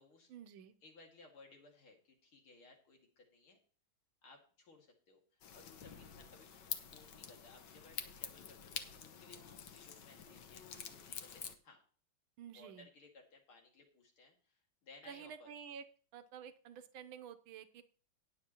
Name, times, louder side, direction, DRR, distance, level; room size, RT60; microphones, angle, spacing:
voice 1, 0.3-0.7 12.4-12.9 15.1-15.8 16.1-17.8, right 8 dB, 75° right, 9 dB, 1.6 m, -51 dB
voice 2, 0.8-3.6 4.2-6.6 6.9-11.8 12.5-15.5, left 3 dB, 80° left, 1 dB, 3.1 m, -61 dB
sound 1, 5.4-11.6, left 7 dB, 60° left, 1.5 m, -48 dB
19.0 x 7.1 x 3.0 m, 0.41 s
omnidirectional pair, 2.3 m